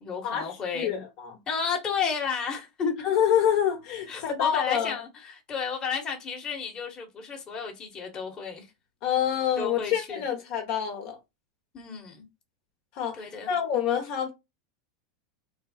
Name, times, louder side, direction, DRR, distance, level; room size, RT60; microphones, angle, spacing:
voice 1, 0.0-1.0 1.5-3.0 4.1-8.7 9.6-10.4 11.7-12.2 13.1-13.5, left 6 dB, 25° left, 1.1 m, -32 dB
voice 2, 0.7-1.3 3.0-5.0 9.0-11.2 12.9-14.3, left 9 dB, 55° left, 1.0 m, -27 dB
3.3 x 2.0 x 4.0 m
supercardioid pair, 125°, 3 cm